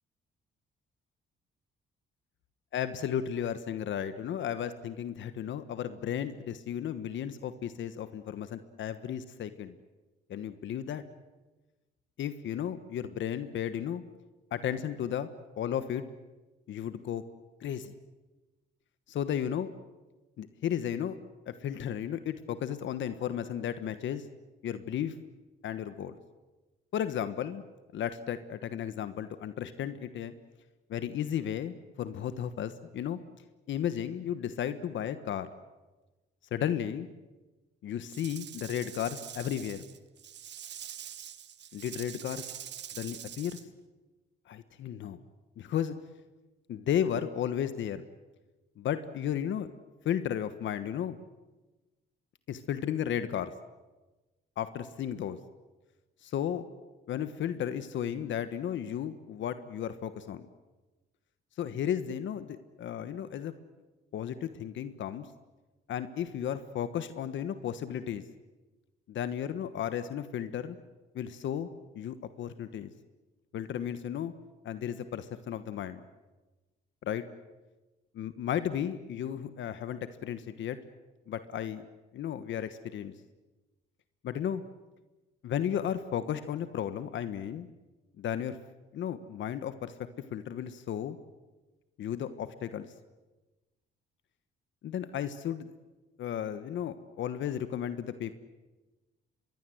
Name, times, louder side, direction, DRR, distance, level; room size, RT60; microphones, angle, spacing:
voice 1, 2.7-9.8 10.3-11.0 12.2-14.0 14.5-15.3 15.6-16.0 16.7-17.2 17.6-17.9 19.1-19.7 20.4-21.2 21.5-24.2 24.6-25.1 25.6-26.2 26.9-27.6 27.9-30.3 30.9-33.2 33.7-35.5 36.5-37.1 37.8-39.8 41.7-42.5 42.9-43.6 44.5-45.2 45.6-45.9 46.7-48.0 48.8-49.7 50.0-51.2 52.5-53.5 54.6-55.4 56.2-56.6 57.1-60.5 61.6-63.5 64.1-65.3 65.9-68.2 69.1-70.8 71.1-71.7 71.9-72.9 73.5-74.3 74.6-76.0 77.0-77.2 78.1-80.8 81.3-81.8 82.1-83.1 84.2-84.6 85.4-87.7 88.2-88.6 88.9-89.9 90.3-91.2 92.0-92.9 94.8-95.7 96.2-98.4, left 9 dB, 70° left, 12 dB, 1.3 m, -34 dB
Rattle / Rattle (instrument), 38.1-43.6, right 10 dB, 60° right, 1.3 m, -45 dB
26.0 x 21.5 x 7.9 m, 1.2 s
cardioid pair, 90°, 20 cm